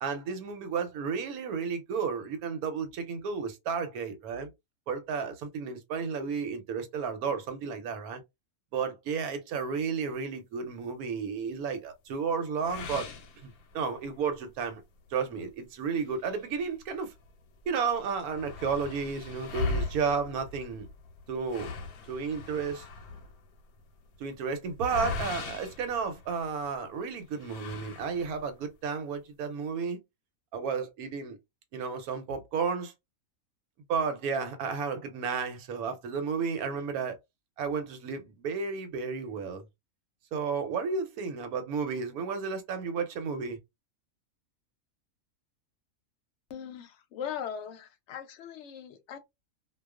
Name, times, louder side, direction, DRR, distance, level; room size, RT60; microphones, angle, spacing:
voice 1, 0.0-4.5 4.9-8.2 8.7-13.1 13.4-14.8 15.1-17.1 17.7-20.9 21.3-21.7 22.1-22.8 24.2-30.0 30.5-31.4 31.7-32.9 33.9-37.2 37.6-39.6 40.3-43.6, right 5 dB, 80° right, 1.1 m, -32 dB
sound 1, 12.6-14.1 14.5-14.6 15.1-15.2 16.0-17.3 17.6-17.7 17.9-26.7 27.4-28.5, left 3 dB, 90° left, 1.1 m, -39 dB
voice 2, 46.5-49.2, left 8 dB, 65° left, 0.8 m, -39 dB
2.3 x 2.3 x 2.3 m
omnidirectional pair, 1.5 m